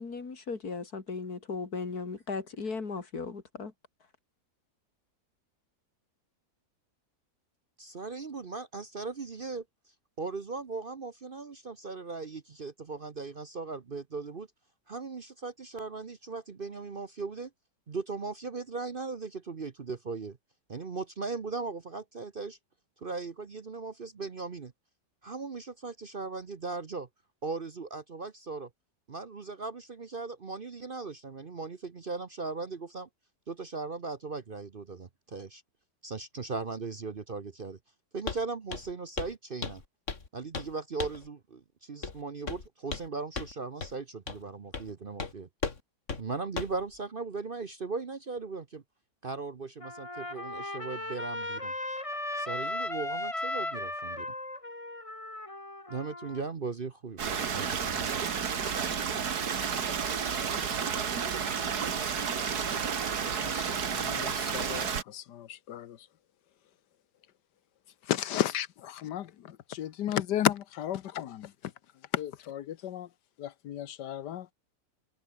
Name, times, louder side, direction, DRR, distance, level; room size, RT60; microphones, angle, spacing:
voice 1, 0.0-3.7, left 4 dB, 65° left, 3.3 m, -37 dB
voice 2, 7.8-9.6 10.2-14.5 14.9-17.5 17.9-20.4 20.7-22.6 23.0-24.7 25.2-27.1 27.4-28.7 29.1-33.1 33.5-35.6 36.0-37.8 38.1-39.8 40.3-45.5 46.2-48.8 49.2-51.7 52.3-54.3 55.9-58.5, right 4 dB, 40° right, 1.0 m, -38 dB
Walk footsteps, 38.3-38.4 38.7-38.9 39.2-39.4 39.6-40.3 40.5-40.7 41.0-41.3 42.0-42.2 42.5-43.1 43.4-43.5 43.8-43.9 44.3-44.4 44.7-44.9 45.2-45.3 45.6-45.8 46.1-46.2 46.6-46.8, left 4 dB, 45° left, 2.5 m, -36 dB
Trumpet, 49.8-56.4, left 2 dB, 20° left, 3.0 m, -36 dB
Stream, 57.2-65.0, right 6 dB, 65° right, 2.3 m, -31 dB
voice 3, 63.3-66.1 68.0-71.7 72.1-73.1 73.4-74.5, left 11 dB, 90° left, 1.5 m, -34 dB
omnidirectional pair, 1.8 m